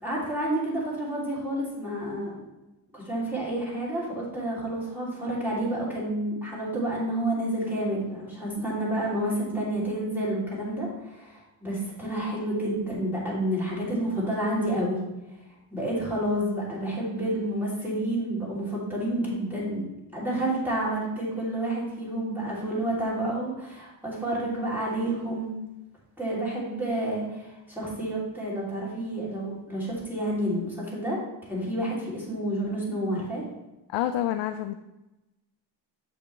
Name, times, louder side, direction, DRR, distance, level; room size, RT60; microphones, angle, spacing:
voice 1, 0.0-2.3 2.9-15.0 15.7-19.8 20.1-25.5 26.2-31.2 31.5-33.4, right 1 dB, 5° right, -7 dB, 2.9 m, -29 dB
voice 2, 33.9-34.7, left 12 dB, 90° left, 8 dB, 0.5 m, -27 dB
7.5 x 6.8 x 3.3 m, 0.99 s
cardioid pair, 130°, 42 cm